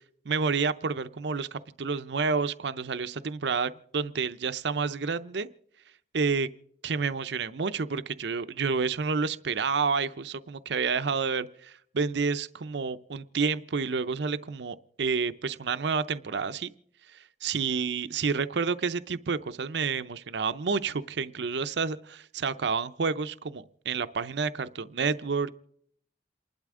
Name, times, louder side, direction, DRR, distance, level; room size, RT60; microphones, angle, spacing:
voice 1, 0.3-5.5 6.1-6.5 6.8-16.7 17.1-25.5, right 5 dB, 70° right, 12 dB, 0.6 m, -29 dB
28.0 x 12.0 x 3.7 m, 0.68 s
head